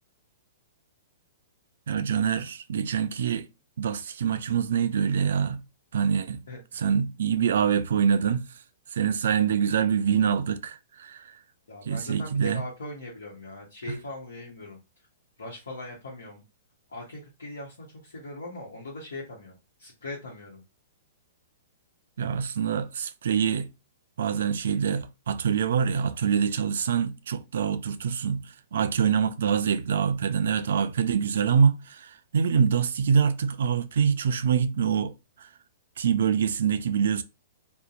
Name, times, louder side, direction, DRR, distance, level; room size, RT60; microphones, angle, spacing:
voice 1, 1.9-3.5 3.8-5.6 5.9-6.4 6.7-8.5 8.9-11.4 11.9-12.6 13.9-14.0 22.2-23.7 24.2-35.5 36.0-37.2, right 7 dB, 75° right, 0.3 m, -25 dB
voice 2, 6.5-6.8 11.7-14.8 15.4-16.4 16.9-20.6, left 2 dB, 85° left, 0.9 m, -40 dB
2.6 x 2.1 x 2.4 m
hypercardioid pair, 130°, 0 cm